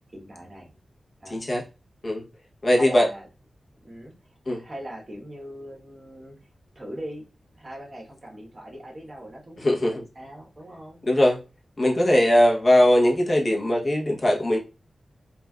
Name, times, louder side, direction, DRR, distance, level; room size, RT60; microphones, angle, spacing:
voice 1, 0.1-0.7 1.2-1.4 2.8-3.3 3.8-4.1 4.4-6.4 6.7-7.2 7.6-11.0, right 1 dB, 30° right, 1.2 m, -40 dB
voice 2, 1.3-1.6 2.0-2.2 2.6-3.1 4.5-4.6 9.6-10.0 11.1-11.4 11.8-14.6, left 1 dB, 40° left, 0.8 m, -20 dB
3.3 x 2.5 x 2.3 m
wide cardioid pair, 80°, 0 cm